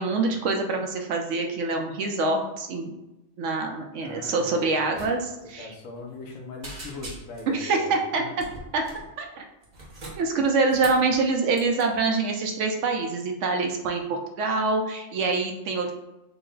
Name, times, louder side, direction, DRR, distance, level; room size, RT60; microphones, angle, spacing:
voice 1, 0.0-2.9 3.4-5.7 7.5-8.2 8.7-8.8 9.2-9.4 10.2-15.9, right 3 dB, 70° right, 3 dB, 0.9 m, -25 dB
voice 2, 4.0-5.1 5.4-8.5, left 3 dB, 80° left, 1 dB, 1.1 m, -40 dB
sound 1, 4.9-5.1 5.4-5.5 5.9-6.3 6.6-7.5 8.4-9.1 9.6-11.1 11.5-11.8, right 1 dB, 40° right, 0.8 m, -41 dB
3.8 x 2.1 x 3.7 m, 0.97 s
omnidirectional pair, 1.4 m